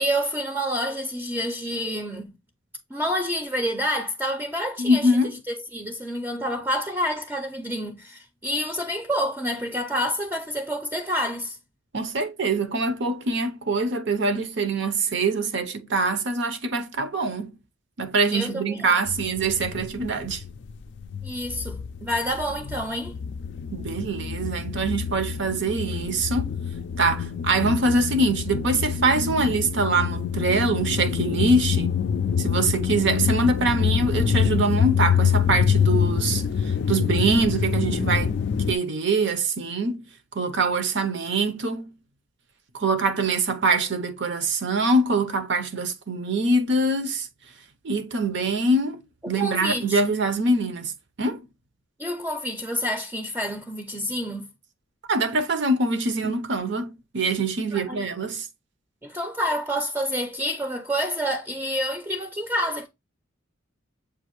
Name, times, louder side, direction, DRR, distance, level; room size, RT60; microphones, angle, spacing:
voice 1, 0.0-2.3 2.9-5.1 5.7-11.6 18.3-19.0 21.2-23.2 49.4-50.0 52.0-54.5 57.7-58.0 59.0-62.9, equal, 10° right, 0.5 m, -28 dB
voice 2, 4.8-5.4 11.9-17.6 18.0-20.4 23.7-26.5 27.0-31.9 32.4-38.3 38.7-40.0 40.3-41.9 42.7-47.3 47.8-50.9 51.2-51.4 55.1-58.5, right 2 dB, 60° right, 0.7 m, -24 dB
sound 1, 19.1-20.7 21.0-38.7, left 7 dB, 60° left, 0.3 m, -26 dB
7.1 x 2.5 x 3.0 m
head